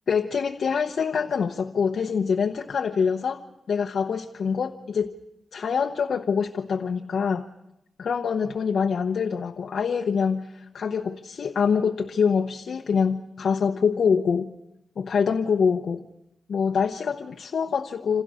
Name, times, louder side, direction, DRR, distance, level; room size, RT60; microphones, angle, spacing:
voice 1, 0.1-3.4 3.7-5.1 5.5-7.5 8.0-14.5 15.0-16.0 16.5-18.2, left 6 dB, 70° left, 5 dB, 1.1 m, -25 dB
28.0 x 27.0 x 6.4 m, 0.86 s
wide cardioid pair, 140°, 0 cm